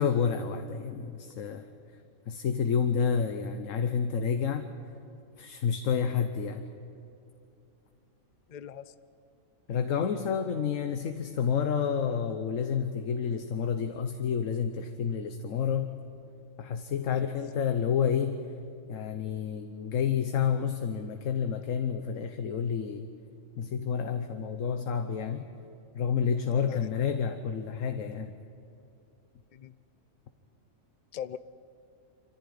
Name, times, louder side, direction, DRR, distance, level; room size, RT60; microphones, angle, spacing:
voice 1, 0.0-1.7 2.3-4.7 5.4-6.7 9.7-15.9 16.6-18.4 18.9-23.1 23.6-25.5 25.9-28.3, left 7 dB, 75° left, 7 dB, 1.3 m, -29 dB
voice 2, 8.5-8.8 17.0-17.2 26.7-26.9 29.5-29.7 31.1-31.4, left 9 dB, 45° left, 14 dB, 0.6 m, -40 dB
25.5 x 14.5 x 9.5 m, 2.7 s
omnidirectional pair, 1.3 m